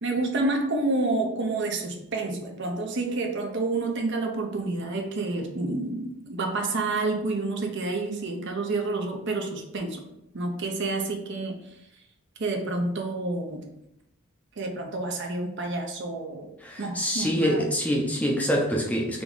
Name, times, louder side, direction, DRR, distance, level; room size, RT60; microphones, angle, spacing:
voice 1, 0.0-10.0 10.3-11.6 12.4-13.7 14.6-16.5 16.8-17.7, right 2 dB, 50° right, 3 dB, 0.7 m, -29 dB
voice 2, 16.6-19.2, equal, 5° left, -1 dB, 0.5 m, -25 dB
3.8 x 3.5 x 3.8 m, 0.83 s
head